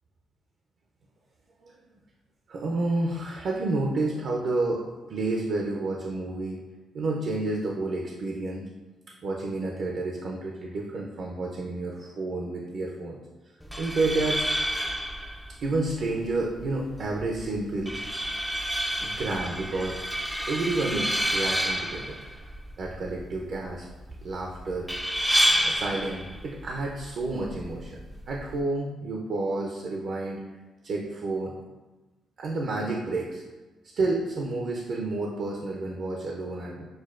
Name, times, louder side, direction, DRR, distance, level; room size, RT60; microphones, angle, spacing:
voice 1, 2.5-4.8 5.1-6.6 6.9-8.7 9.2-13.2 13.8-14.5 15.6-18.0 19.0-20.0 20.5-22.2 22.8-23.9 24.2-24.9 25.6-30.4 30.8-31.5 32.4-33.4 33.9-36.8, right 2 dB, 65° right, -1 dB, 0.5 m, -30 dB
sound 1, 13.6-28.6, equal, 5° right, 0.3 m, -30 dB
6.2 x 2.2 x 2.4 m, 1.2 s
cardioid pair, 105°, 0 cm